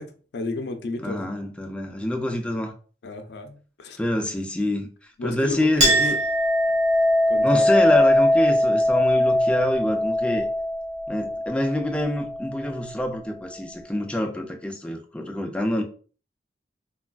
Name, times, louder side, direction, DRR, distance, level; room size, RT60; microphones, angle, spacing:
voice 1, 0.0-1.3 3.0-4.0 5.2-6.0 7.3-7.8, left 3 dB, 70° left, 0.4 m, -33 dB
voice 2, 1.0-2.7 4.0-4.9 5.2-6.2 7.4-10.5 11.1-15.8, left 1 dB, 5° left, 0.3 m, -26 dB
Chink clink, 5.8-12.9, left 1 dB, 45° right, 1.0 m, -21 dB
3.2 x 2.3 x 2.3 m
head